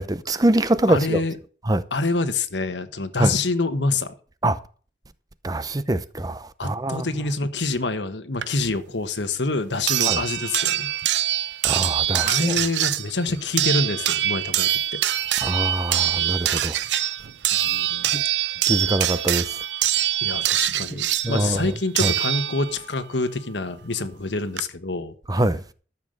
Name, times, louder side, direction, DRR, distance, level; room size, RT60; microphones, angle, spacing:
voice 1, 0.0-1.2 1.7-1.8 3.2-3.3 4.4-4.6 5.4-7.1 10.1-10.2 11.6-12.5 15.4-16.8 18.1-18.2 18.7-19.6 20.9-21.7 22.0-22.1 25.3-25.6, right 1 dB, 20° right, 0.7 m, -24 dB
voice 2, 0.9-1.4 1.9-4.1 6.6-10.9 12.2-15.0 17.6-18.1 20.2-25.1, left 3 dB, 80° left, 1.4 m, -26 dB
sound 1, 8.4-8.5 9.9-22.9 24.1-24.2 24.6-24.7, right 12 dB, 80° right, 0.6 m, -24 dB
13.0 x 7.3 x 6.5 m
head